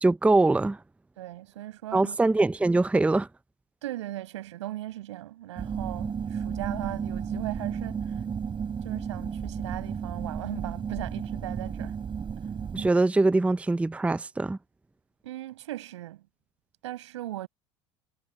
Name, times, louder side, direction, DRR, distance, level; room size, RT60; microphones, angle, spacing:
voice 1, 0.0-0.8 1.9-3.3 12.7-14.6, right 2 dB, 10° right, 0.6 m, -23 dB
voice 2, 1.2-2.2 3.8-8.2 8.8-12.0 12.4-12.5 15.2-16.2 16.8-17.5, right 15 dB, 85° right, 6.0 m, -38 dB
sound 1, 5.6-12.9, right 7 dB, 35° right, 7.8 m, -33 dB
hypercardioid pair, 85°, 15 cm